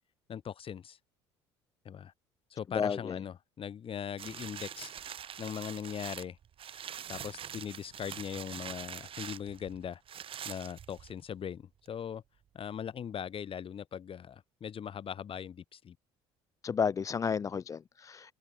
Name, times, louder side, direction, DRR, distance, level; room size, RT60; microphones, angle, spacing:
voice 1, 0.3-1.0 1.8-2.1 2.5-4.9 5.4-6.4 7.1-10.0 10.4-12.2 12.5-16.0, left 8 dB, 40° left, 4.7 m, -40 dB
voice 2, 2.8-3.1 16.6-18.3, left 6 dB, 25° left, 0.4 m, -32 dB
sound 1, 4.2-11.3 11.9-12.0, right 9 dB, 40° right, 1.4 m, -44 dB
open air
figure-of-eight pair, 55°, 14 cm